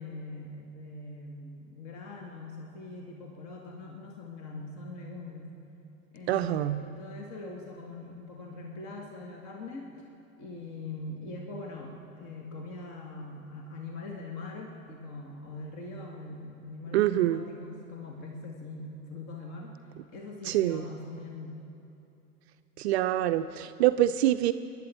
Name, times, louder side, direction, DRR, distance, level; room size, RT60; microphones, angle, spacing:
voice 1, 0.0-5.6 6.1-9.9 10.4-19.7 20.1-21.6, left 2 dB, 40° left, 1 dB, 1.9 m, -42 dB
voice 2, 6.3-6.8 16.9-17.4 20.5-20.8 22.8-24.5, right 13 dB, 50° right, 10 dB, 0.5 m, -25 dB
25.5 x 11.5 x 4.4 m, 2.8 s
figure-of-eight pair, 85°, 44 cm